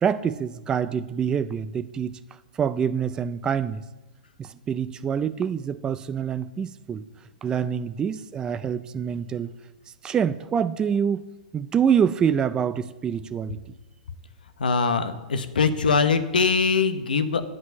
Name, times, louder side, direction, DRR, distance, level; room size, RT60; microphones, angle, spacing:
voice 1, 0.0-2.2 2.5-3.8 4.4-7.0 7.4-9.5 10.0-11.2 11.5-13.6, right 7 dB, 15° right, 13 dB, 0.4 m, -26 dB
voice 2, 14.6-17.4, left 5 dB, 85° left, 9 dB, 1.0 m, -22 dB
9.5 x 5.5 x 7.9 m, 1.1 s
hypercardioid pair, 125°, 5 cm